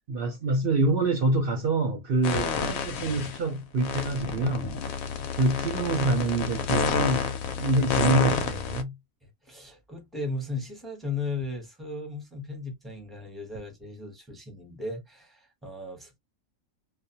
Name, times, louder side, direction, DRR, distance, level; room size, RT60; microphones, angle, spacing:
voice 1, 0.1-4.7 5.4-7.3 7.6-8.9, right 2 dB, 55° right, 0.7 m, -26 dB
sound 1, 2.2-3.4 3.8-8.8, left 5 dB, 85° left, 1.0 m, -29 dB
voice 2, 9.4-16.2, left 3 dB, ahead, 0.6 m, -36 dB
2.4 x 2.1 x 2.7 m
omnidirectional pair, 1.4 m